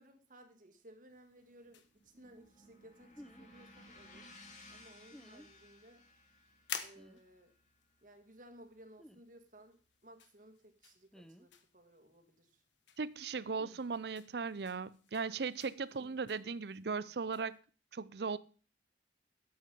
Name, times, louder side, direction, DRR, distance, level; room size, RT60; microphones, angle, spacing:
voice 1, 0.0-4.4 4.7-6.0 6.8-7.5 8.0-12.6 16.0-16.2, right 1 dB, 45° right, 1.9 m, -59 dB
sound 1, 1.1-17.6, left 8 dB, 85° left, 1.2 m, -54 dB
sound 2, 1.5-9.8, left 1 dB, 40° left, 2.6 m, -60 dB
sound 3, 3.2-3.5 5.1-5.5 6.9-7.2 9.0-9.2 11.1-11.5 13.6-13.8, equal, 5° left, 0.5 m, -55 dB
voice 2, 13.0-17.6 17.9-18.4, right 5 dB, 60° right, 0.5 m, -38 dB
12.0 x 7.9 x 5.5 m
head